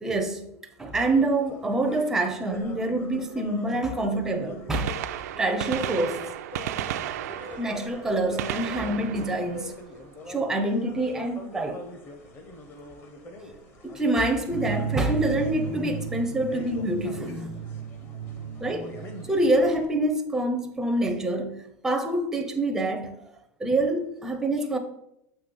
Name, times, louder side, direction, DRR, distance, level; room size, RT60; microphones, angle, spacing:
voice 1, 0.0-0.4 0.8-5.0 5.4-6.2 7.6-9.7 10.3-11.8 13.8-17.5 18.6-18.9 19.3-23.1 23.6-24.8, right 2 dB, 5° right, 0.5 m, -26 dB
sound 1, 0.9-19.9, left 2 dB, 25° left, 0.8 m, -43 dB
Gunshot gunfire, 4.6-10.4 12.4-12.5 13.5-13.6 15.2-15.3 16.7-16.8 17.0-17.1, right 12 dB, 90° right, 0.4 m, -34 dB
sound 2, 14.5-19.9, right 6 dB, 80° left, 2.4 m, -35 dB
6.8 x 3.1 x 5.3 m
supercardioid pair, 165°, 9 cm